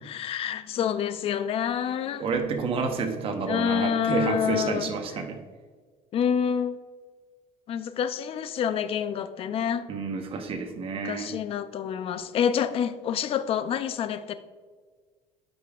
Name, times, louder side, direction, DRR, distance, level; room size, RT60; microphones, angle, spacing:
voice 1, 0.0-2.3 3.5-4.9 6.1-6.8 7.7-9.9 11.0-14.3, left 8 dB, 45° left, 0.5 m, -27 dB
voice 2, 2.2-5.4 9.9-11.3, right 4 dB, 45° right, 1.0 m, -29 dB
10.0 x 5.1 x 2.4 m
cardioid pair, 130°, 14 cm